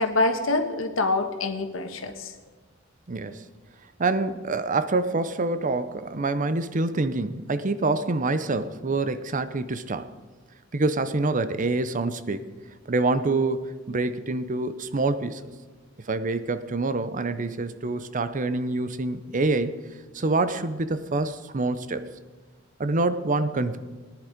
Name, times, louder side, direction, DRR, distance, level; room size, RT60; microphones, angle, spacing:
voice 1, 0.0-2.3, left 2 dB, 80° left, 6 dB, 1.5 m, -25 dB
voice 2, 3.1-3.4 4.0-10.1 10.7-12.5 12.9-15.5 16.1-19.7 20.1-22.0 22.8-23.8, right 3 dB, 40° right, 12 dB, 0.7 m, -26 dB
18.5 x 10.5 x 5.1 m, 1.3 s
head